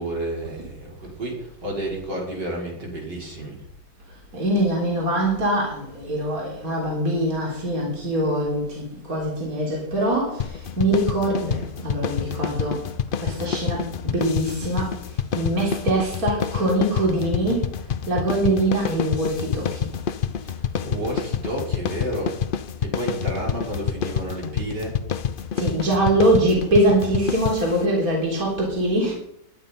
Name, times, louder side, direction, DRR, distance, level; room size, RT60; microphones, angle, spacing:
voice 1, 0.0-3.6 20.5-22.4 22.8-25.0, right 1 dB, 85° right, 6.1 m, -31 dB
voice 2, 4.3-17.7 18.1-19.9 25.6-29.1, right 1 dB, 55° right, 4.2 m, -23 dB
sound 1, 10.4-27.8, left 7 dB, 70° left, 0.5 m, -28 dB
20.5 x 11.0 x 5.4 m
omnidirectional pair, 1.8 m